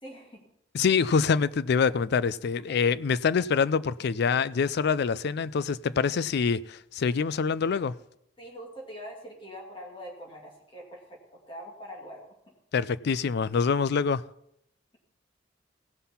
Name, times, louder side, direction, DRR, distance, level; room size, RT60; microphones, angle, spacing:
voice 1, 0.0-0.4 2.7-2.8 8.4-11.2 11.5-12.5, equal, 30° left, 2.1 m, -43 dB
voice 2, 0.7-8.0 12.7-14.2, left 5 dB, 60° left, 0.4 m, -25 dB
17.0 x 5.7 x 5.7 m
head